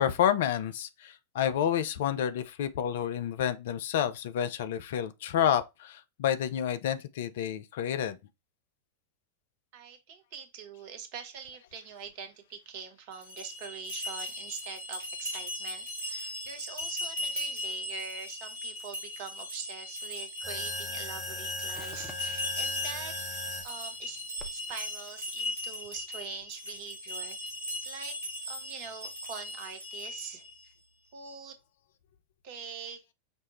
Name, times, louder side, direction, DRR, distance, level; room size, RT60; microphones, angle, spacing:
voice 1, 0.0-8.2, left 9 dB, 55° left, 0.4 m, -29 dB
voice 2, 9.7-23.3 23.6-24.2 24.5-27.4 27.8-28.2 28.5-30.7 31.1-31.6 32.4-33.0, right 6 dB, 50° right, 0.8 m, -44 dB
sound 1, 13.1-30.6, left 1 dB, 80° left, 1.9 m, -38 dB
sound 2, 20.4-23.7 24.4-25.5, left 1 dB, 5° right, 0.8 m, -40 dB
5.2 x 2.1 x 3.0 m
figure-of-eight pair, 90°, 0 cm